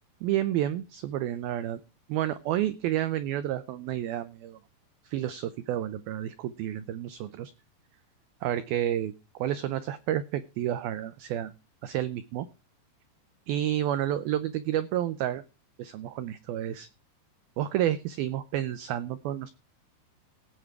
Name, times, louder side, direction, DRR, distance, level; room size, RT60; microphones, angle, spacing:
voice 1, 0.2-1.8 2.1-4.6 5.0-7.5 8.4-11.5 11.8-12.5 13.5-15.4 15.8-16.9 17.6-19.5, right 12 dB, 90° right, 14 dB, 2.1 m, -30 dB
17.0 x 7.6 x 4.7 m, 0.31 s
omnidirectional pair, 5.3 m